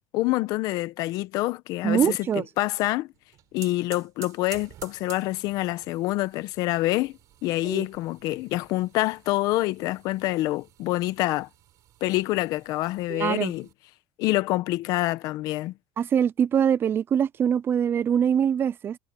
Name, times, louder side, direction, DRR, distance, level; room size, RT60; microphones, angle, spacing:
voice 1, 0.1-3.1 3.5-7.1 7.4-11.5 12.0-13.7 14.2-15.7, left 18 dB, 70° left, 1.1 m, -26 dB
voice 2, 1.8-2.4 7.6-7.9 13.1-13.5 16.0-19.0, right 8 dB, 35° right, 0.5 m, -23 dB
sound 1, 3.1-13.7, right 14 dB, 60° right, 5.7 m, -50 dB
cardioid pair, 115°, 7 cm